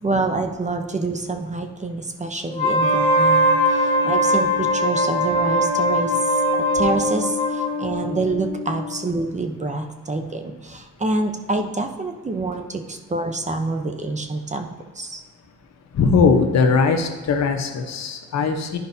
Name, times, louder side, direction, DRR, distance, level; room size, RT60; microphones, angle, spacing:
voice 1, 0.0-14.7 14.9-15.2, right 2 dB, 25° right, 5 dB, 0.8 m, -27 dB
Wind instrument woodwind instrument, 2.5-7.7, equal, 20° left, 1.5 m, -20 dB
sound 1, 2.8-9.1, equal, 85° right, 1.2 m, -30 dB
voice 2, 15.9-18.8, left 5 dB, 60° left, 4 dB, 1.1 m, -20 dB
11.5 x 5.1 x 2.8 m, 1.3 s
cardioid pair, 90°, 30 cm